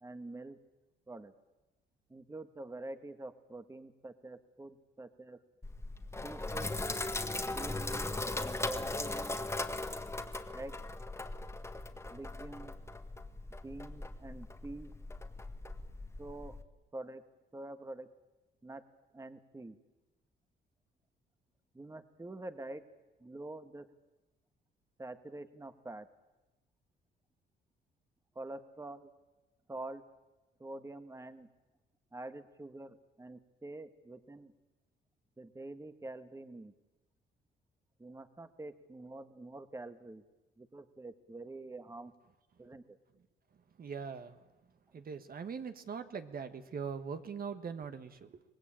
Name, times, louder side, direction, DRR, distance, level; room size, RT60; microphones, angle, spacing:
voice 1, 0.0-0.6 1.1-1.3 2.1-5.4 6.2-6.7 7.5-9.4 10.5-10.8 12.1-12.7 13.6-14.9 16.2-16.6 16.9-17.2 17.5-18.1 18.6-18.8 19.1-19.8 21.7-22.8 23.2-23.9 25.0-26.1 28.3-29.1 29.7-30.0 30.6-31.5 32.1-34.5 35.4-36.7 38.0-40.2 40.6-42.1 42.6-43.0, right 2 dB, 15° right, 10 dB, 1.5 m, -46 dB
Sink (filling or washing), 5.6-16.6, left 2 dB, 15° left, 1.7 m, -39 dB
voice 2, 43.5-44.5 44.9-48.4, right 6 dB, 50° right, 8 dB, 1.4 m, -42 dB
24.5 x 19.0 x 8.9 m, 1.1 s
cardioid pair, 90°, 20 cm